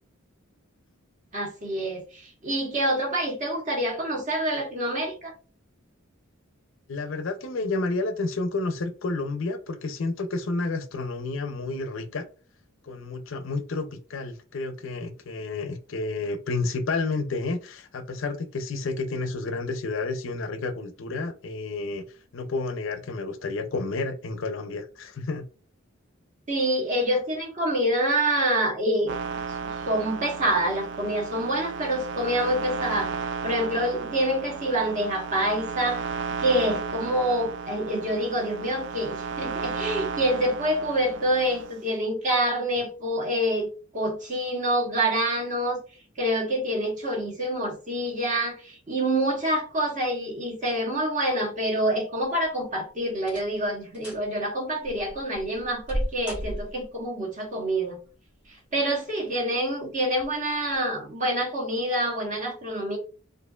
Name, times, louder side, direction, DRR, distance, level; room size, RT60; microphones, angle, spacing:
voice 1, 1.3-5.3 26.5-29.2 29.8-33.1 33.4-36.0 36.4-45.8 46.2-58.0 58.7-63.0, right 1 dB, 40° right, 1.2 m, -26 dB
voice 2, 6.9-12.3 12.8-22.0 22.3-25.5, left 3 dB, 65° left, 0.5 m, -30 dB
sound 1, 29.1-41.8, right 5 dB, 60° right, 0.4 m, -34 dB
sound 2, 52.2-52.7 53.2-53.6 53.9-54.3 54.8-57.0 58.2-58.8 59.3-59.4 60.1-60.3 60.7-60.8, equal, 5° right, 1.5 m, -35 dB
4.3 x 2.5 x 2.3 m
head